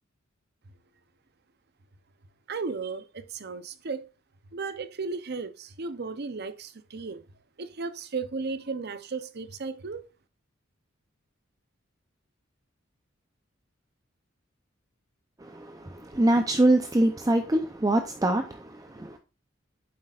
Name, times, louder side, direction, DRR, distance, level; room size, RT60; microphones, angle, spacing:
voice 1, 2.5-4.1 4.5-7.2 7.6-10.0, right 4 dB, 55° right, 0.7 m, -35 dB
voice 2, 15.4-19.2, right 1 dB, 20° right, 0.6 m, -24 dB
8.7 x 7.5 x 2.5 m
head